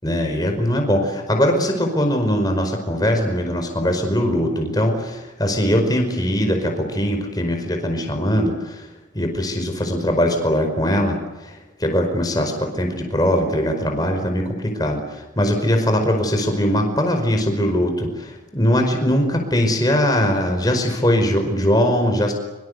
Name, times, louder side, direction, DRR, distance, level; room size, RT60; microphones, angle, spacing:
voice 1, 0.0-8.9 9.1-11.5 11.8-22.3, equal, 20° left, 4 dB, 5.0 m, -21 dB
25.5 x 25.5 x 8.1 m, 1.0 s
head